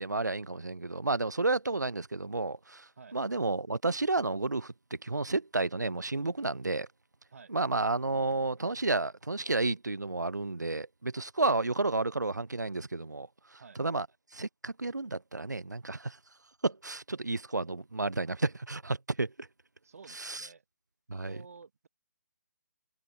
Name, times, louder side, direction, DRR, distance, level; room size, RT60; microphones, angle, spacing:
voice 1, 0.0-4.7 5.0-6.9 7.5-13.3 13.8-14.1 14.3-16.2 16.6-19.5 20.1-20.5 21.1-21.4, right 3 dB, 85° right, 0.7 m, -31 dB
voice 2, 19.8-20.6 21.2-21.9, right 5 dB, 60° right, 1.3 m, -52 dB
figure-of-eight pair, 140°, 9 cm